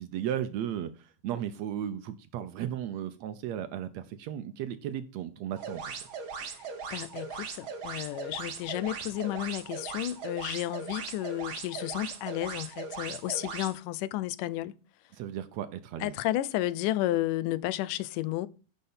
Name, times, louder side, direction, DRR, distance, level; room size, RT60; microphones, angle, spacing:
voice 1, 0.0-5.9 15.1-16.2, right 10 dB, 75° right, 1.7 m, -35 dB
sound 1, 5.6-13.7, right 5 dB, 55° right, 1.7 m, -39 dB
voice 2, 6.9-14.8 16.0-18.5, left 15 dB, 90° left, 2.2 m, -32 dB
10.5 x 5.6 x 5.5 m
omnidirectional pair, 3.6 m